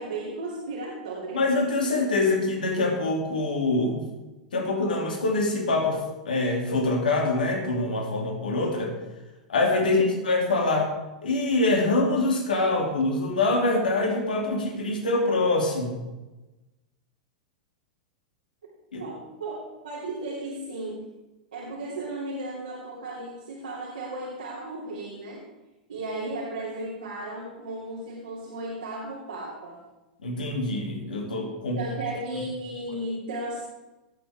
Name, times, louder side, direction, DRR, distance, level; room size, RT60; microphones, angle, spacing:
voice 1, 0.0-1.4 9.8-10.2 19.0-21.1 21.5-25.4 25.9-29.8 31.8-33.6, right 2 dB, 80° right, -5 dB, 2.7 m, -35 dB
voice 2, 1.3-4.0 4.5-8.9 9.5-10.9 11.2-16.1 18.9-19.0 30.2-31.8, left 2 dB, 80° left, 1 dB, 2.5 m, -25 dB
17.0 x 7.2 x 3.5 m, 1.1 s
hypercardioid pair, 100°, 5 cm